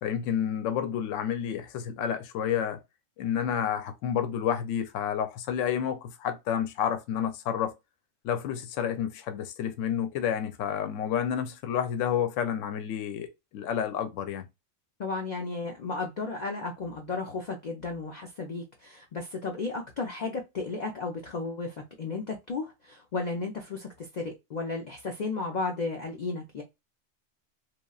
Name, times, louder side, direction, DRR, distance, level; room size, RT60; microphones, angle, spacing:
voice 1, 0.0-2.8 3.2-7.7 8.2-14.4, left 9 dB, 75° left, 0.9 m, -30 dB
voice 2, 15.0-26.6, left 3 dB, 55° left, 0.5 m, -34 dB
3.0 x 2.3 x 2.3 m
omnidirectional pair, 1.4 m